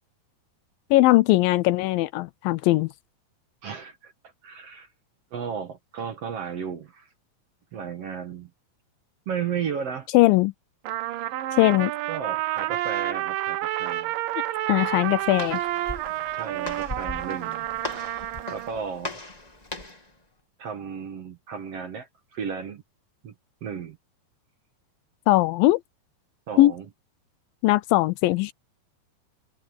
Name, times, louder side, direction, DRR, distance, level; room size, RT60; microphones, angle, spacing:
voice 1, 0.9-2.9 10.1-10.5 11.6-11.9 14.7-15.6 25.3-25.8 26.6-26.7 27.6-28.5, left 18 dB, 80° left, 2.2 m, -19 dB
voice 2, 3.6-4.1 4.4-4.9 5.3-7.1 7.7-8.5 9.3-10.1 11.1-11.4 12.1-14.1 16.3-17.7 17.9-19.2 20.6-22.8 23.2-23.3 23.6-24.0 26.5-26.9, right 7 dB, 55° right, 2.0 m, -34 dB
Trumpet, 10.9-18.7, right 14 dB, 75° right, 2.4 m, -29 dB
Walk footsteps, 14.7-20.1, left 2 dB, 15° left, 1.5 m, -39 dB
omnidirectional pair, 4.2 m